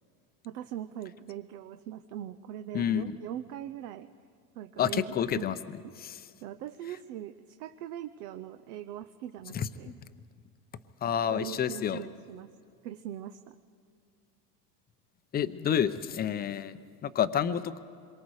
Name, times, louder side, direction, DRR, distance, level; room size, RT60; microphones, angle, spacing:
voice 1, 0.4-4.1 4.6-5.5 6.4-10.0 11.2-12.5 12.8-13.5, right 11 dB, 70° right, 9 dB, 0.9 m, -41 dB
voice 2, 2.7-3.0 4.8-5.5 6.0-6.2 9.5-9.7 11.0-12.0 15.3-17.8, left 9 dB, 20° left, 12 dB, 0.6 m, -29 dB
27.0 x 23.0 x 4.9 m, 2.3 s
supercardioid pair, 130°, 48 cm